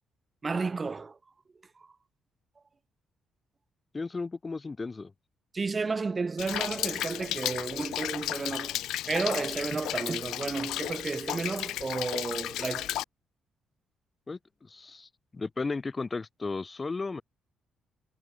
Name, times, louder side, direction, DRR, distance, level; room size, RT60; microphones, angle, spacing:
voice 1, 0.4-1.2 5.5-8.8 9.1-12.9, right 4 dB, 30° right, 2.3 m, -32 dB
voice 2, 3.9-5.1 14.3-17.2, left 3 dB, 25° left, 2.8 m, -35 dB
Rain, 6.4-13.0, left 14 dB, 85° left, 0.7 m, -34 dB
cardioid pair, 90°, 0 cm